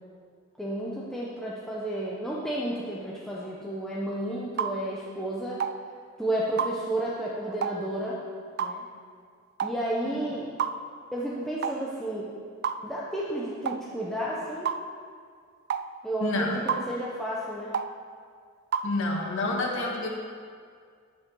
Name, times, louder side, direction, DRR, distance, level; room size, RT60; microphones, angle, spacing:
voice 1, 0.6-5.6 6.2-8.2 8.6-8.9 9.6-10.5 11.1-12.4 12.8-14.7 16.0-17.8, right 1 dB, ahead, -6 dB, 0.9 m, -32 dB
sound 1, 4.6-4.8 5.6-5.8 6.6-6.8 7.6-7.8 8.6-8.8 9.6-9.8 10.6-10.8 11.6-11.8 12.6-12.8 13.7-13.8 14.7-14.8 15.7-15.9 16.7-16.9 17.7-17.9 18.7-18.9, right 7 dB, 50° right, 0.4 m, -29 dB
voice 2, 16.2-16.6 18.8-20.1, left 2 dB, 65° left, -1 dB, 1.6 m, -28 dB
10.0 x 8.5 x 3.9 m, 2.1 s
head